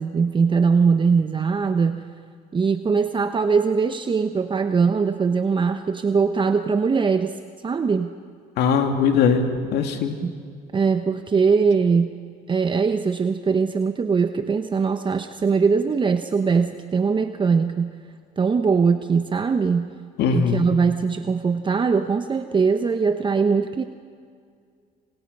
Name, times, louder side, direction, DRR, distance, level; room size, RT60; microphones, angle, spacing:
voice 1, 0.0-2.0 2.5-7.3 7.6-8.1 10.2-10.3 10.7-12.1 12.5-17.9 18.4-19.9 20.3-23.8, right 5 dB, 30° right, 8 dB, 1.0 m, -21 dB
voice 2, 8.6-10.1 20.2-20.7, left 6 dB, 80° left, 5 dB, 2.7 m, -20 dB
27.0 x 26.5 x 5.5 m, 2.1 s
cardioid pair, 110°, 17 cm